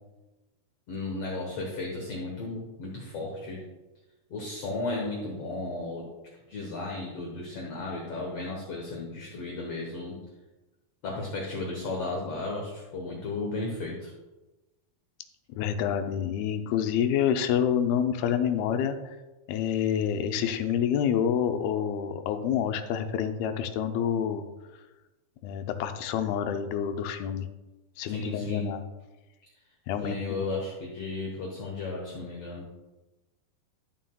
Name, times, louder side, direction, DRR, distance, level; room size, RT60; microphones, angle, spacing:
voice 1, 0.9-3.6 4.3-6.1 6.5-10.2 11.0-14.1 28.1-28.7 30.0-32.7, left 3 dB, 65° left, -1 dB, 1.6 m, -34 dB
voice 2, 15.5-19.2 19.5-24.5 25.4-27.5 28.0-28.8 29.9-30.4, left 8 dB, 85° left, 7 dB, 2.5 m, -28 dB
12.5 x 7.4 x 2.3 m, 1.1 s
omnidirectional pair, 4.4 m